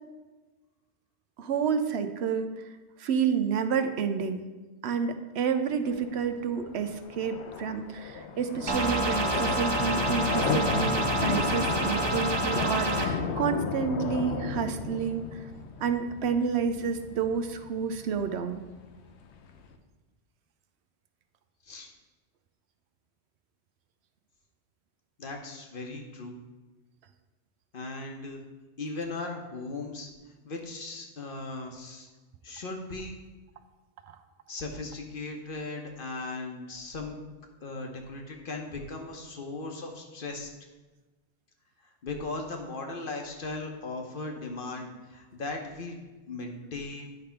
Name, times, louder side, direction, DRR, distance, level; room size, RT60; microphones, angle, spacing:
voice 1, 1.4-2.5 3.0-4.4 4.8-15.5 15.8-18.6 34.1-34.2, right 6 dB, 75° right, 8 dB, 0.8 m, -29 dB
sound 1, 5.8-19.7, left 5 dB, 80° left, 0.9 m, -34 dB
sound 2, 8.7-13.1, right 2 dB, 30° right, 0.6 m, -28 dB
voice 2, 25.2-26.4 27.7-28.4 28.8-30.1 30.4-32.1 32.4-33.1 34.5-37.2 37.6-40.5 42.0-46.0 46.3-47.1, left 3 dB, 55° left, 2 dB, 1.1 m, -37 dB
9.4 x 3.4 x 5.6 m, 1.2 s
omnidirectional pair, 1.1 m